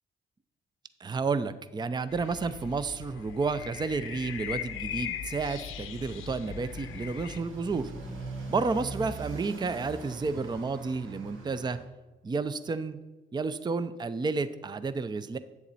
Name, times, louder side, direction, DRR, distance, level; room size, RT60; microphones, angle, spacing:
voice 1, 1.0-7.9 8.5-11.8 12.2-13.0 13.3-15.4, right 4 dB, 20° right, 13 dB, 0.5 m, -31 dB
sound 1, 2.1-7.4, left 9 dB, 85° left, 0.7 m, -39 dB
Motorcycle, 5.9-11.9, right 3 dB, 75° right, 1.5 m, -42 dB
8.0 x 7.1 x 4.1 m, 1.2 s
cardioid pair, 65°, 20 cm